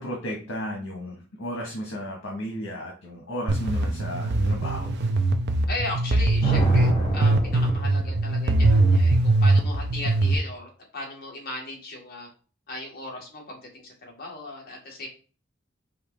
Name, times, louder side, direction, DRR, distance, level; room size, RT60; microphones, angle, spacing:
voice 1, 0.0-4.9, equal, 85° left, -1 dB, 1.2 m, -34 dB
sound 1, 3.5-10.3, right 2 dB, 55° right, 0.5 m, -22 dB
voice 2, 5.7-12.3 12.7-15.1, left 2 dB, 50° left, -2 dB, 1.6 m, -37 dB
sound 2, 6.4-8.4, left 1 dB, 25° left, 1.0 m, -31 dB
4.9 x 3.1 x 3.2 m, 0.37 s
head